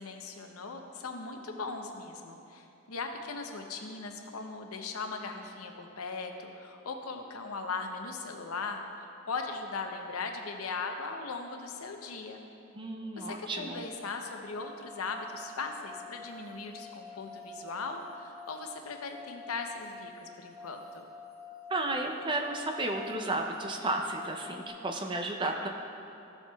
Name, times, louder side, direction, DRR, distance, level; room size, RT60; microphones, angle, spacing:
voice 1, 0.0-8.8 9.3-12.4 13.2-21.0, left 4 dB, 85° left, 4 dB, 0.7 m, -39 dB
voice 2, 12.7-13.8 21.7-25.7, right 2 dB, 25° right, 3 dB, 0.5 m, -33 dB
sound 1, 14.5-24.7, left 3 dB, 45° right, 1.3 m, -48 dB
13.5 x 7.0 x 2.3 m, 2.8 s
head